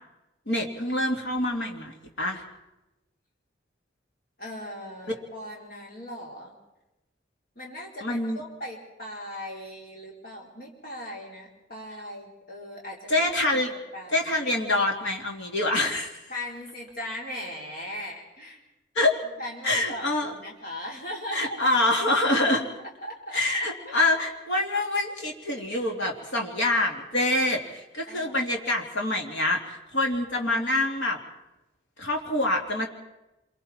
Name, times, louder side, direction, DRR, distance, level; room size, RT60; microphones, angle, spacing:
voice 1, 0.5-2.4 8.0-8.4 13.1-13.7 14.1-16.1 18.9-19.2 19.6-20.3 21.3-22.7 23.3-31.2 32.0-32.9, left 1 dB, 75° left, 1 dB, 2.9 m, -26 dB
voice 2, 4.4-6.5 7.5-14.3 16.3-18.6 19.4-21.6 23.0-23.4 23.8-24.0 28.1-28.5, left 1 dB, 50° left, -3 dB, 4.5 m, -39 dB
27.5 x 23.5 x 4.5 m, 0.99 s
head